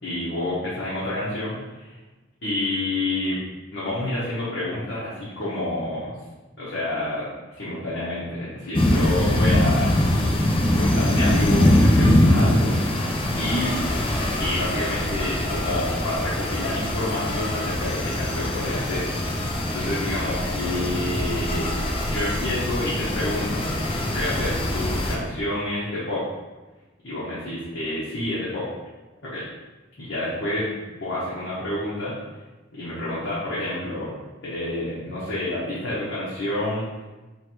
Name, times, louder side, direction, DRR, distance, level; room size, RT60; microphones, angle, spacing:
voice 1, 0.0-2.0 2.4-3.4 3.7-6.1 6.6-7.3 7.5-10.0 10.7-13.7 14.4-19.1 19.7-21.7 22.1-23.7 24.1-26.2 27.0-28.7 29.2-29.5 30.0-32.1 32.7-36.8, left 1 dB, 65° left, -10 dB, 1.1 m, -29 dB
sound 1, 8.7-25.2, left 1 dB, 25° left, 0.5 m, -23 dB
3.2 x 3.2 x 4.4 m, 1.2 s
head